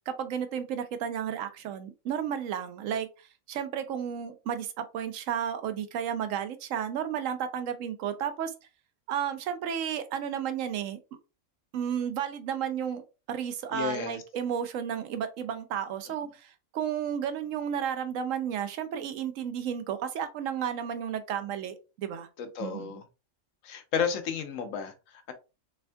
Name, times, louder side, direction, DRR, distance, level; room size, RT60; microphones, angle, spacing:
voice 1, 0.1-8.5 9.1-11.0 11.7-22.3 22.6-23.0, right 8 dB, 90° right, 10 dB, 1.0 m, -33 dB
voice 2, 13.7-14.2 22.4-23.0 23.6-25.3, left 7 dB, 85° left, 8 dB, 1.1 m, -32 dB
3.5 x 3.4 x 2.2 m, 0.29 s
omnidirectional pair, 1.3 m